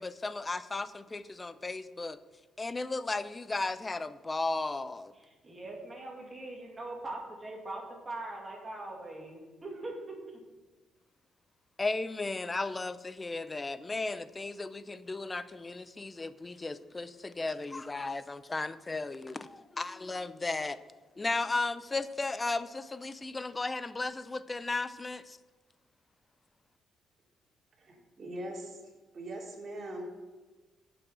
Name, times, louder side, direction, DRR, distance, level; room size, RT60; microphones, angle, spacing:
voice 1, 0.0-2.2 2.6-5.1 11.8-20.8 21.2-25.4, left 3 dB, 25° left, 14 dB, 0.5 m, -35 dB
voice 2, 5.1-10.4, right 2 dB, 25° right, -1 dB, 2.5 m, -42 dB
voice 3, 27.8-28.8 29.1-30.0, right 1 dB, 45° right, -2 dB, 2.8 m, -41 dB
7.7 x 6.2 x 7.7 m, 1.2 s
cardioid pair, 90°, 0 cm